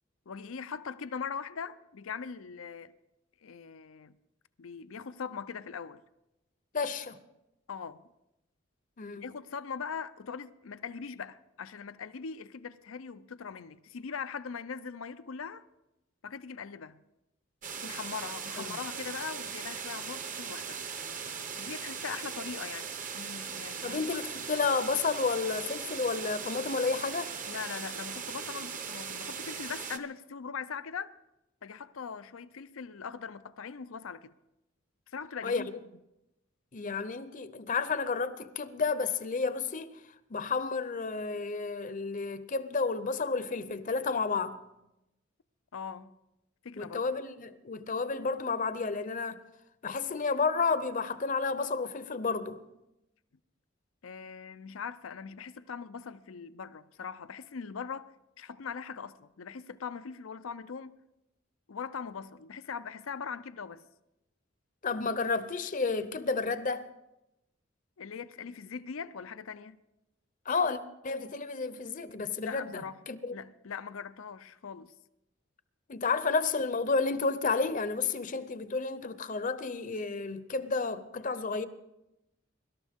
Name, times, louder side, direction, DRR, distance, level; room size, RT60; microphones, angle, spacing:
voice 1, 0.3-3.0 3.4-4.2 4.6-6.0 7.7-8.1 9.1-15.6 16.2-17.0 17.7-20.8 21.6-24.0 27.5-31.2 31.6-34.3 35.1-35.7 45.7-46.1 46.6-47.0 54.0-61.0 61.7-63.9 68.0-69.8 72.4-73.0 73.3-74.9, left 6 dB, 85° left, 0.6 m, -41 dB
voice 2, 6.7-7.2 9.0-9.2 18.6-18.7 23.8-27.3 35.4-35.7 36.7-39.9 40.3-44.6 46.8-49.4 49.8-52.6 64.8-66.9 70.5-73.3 75.9-81.7, left 4 dB, 40° left, 0.7 m, -31 dB
sound 1, 17.6-30.0, right 6 dB, 40° right, 0.9 m, -39 dB
24.0 x 12.5 x 3.6 m
head